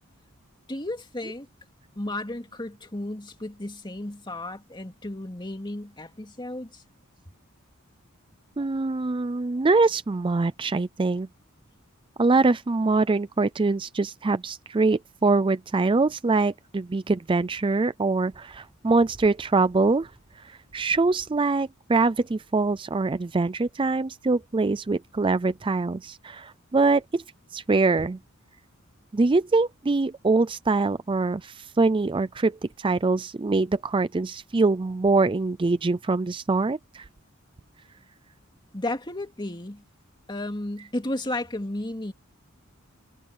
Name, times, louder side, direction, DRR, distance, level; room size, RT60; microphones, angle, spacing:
voice 1, 0.7-1.5 2.0-6.8 38.7-39.8 40.3-42.1, left 1 dB, 20° left, 2.4 m, -33 dB
voice 2, 8.6-11.3 12.2-20.1 20.4-27.2 27.5-28.2 29.1-37.1, right 3 dB, 25° right, 0.4 m, -24 dB
head